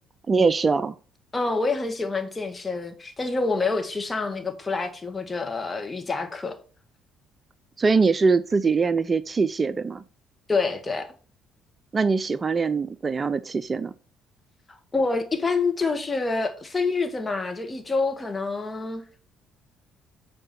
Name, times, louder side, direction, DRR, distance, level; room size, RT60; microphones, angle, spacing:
voice 1, 0.3-0.9 7.8-10.0 11.9-13.9, right 4 dB, 30° right, 0.5 m, -22 dB
voice 2, 1.3-6.6 10.5-11.1 14.7-19.0, left 3 dB, 25° left, 1.9 m, -27 dB
8.7 x 4.6 x 5.9 m
hypercardioid pair, 50°, 0 cm